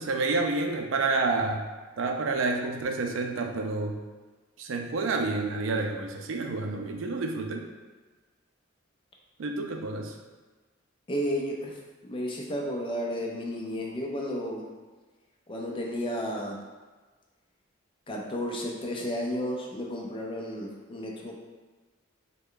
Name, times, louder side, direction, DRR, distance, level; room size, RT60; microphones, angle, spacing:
voice 1, 0.0-1.7 2.0-4.0 4.6-7.7 9.4-10.2, right 3 dB, 70° right, 3 dB, 0.4 m, -29 dB
voice 2, 11.1-14.7 15.5-16.6 18.1-21.4, equal, 25° left, -1 dB, 0.4 m, -32 dB
3.2 x 2.1 x 3.7 m, 1.3 s
head